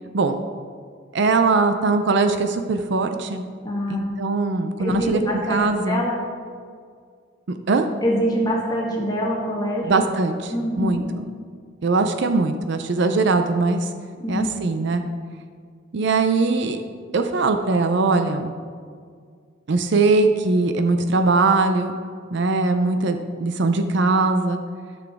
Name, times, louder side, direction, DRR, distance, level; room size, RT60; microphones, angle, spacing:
voice 1, 1.1-3.4 3.9-5.2 5.5-6.0 7.5-7.9 9.8-11.3 11.8-13.9 14.3-15.0 15.9-16.8 17.1-18.5 19.7-21.9 22.3-24.6, right 3 dB, 60° right, 7 dB, 0.5 m, -21 dB
voice 2, 3.6-4.0 4.8-6.2 8.0-10.0 10.5-11.0 14.2-14.5, equal, 20° left, -3 dB, 1.6 m, -24 dB
13.0 x 6.1 x 3.5 m, 2.1 s
head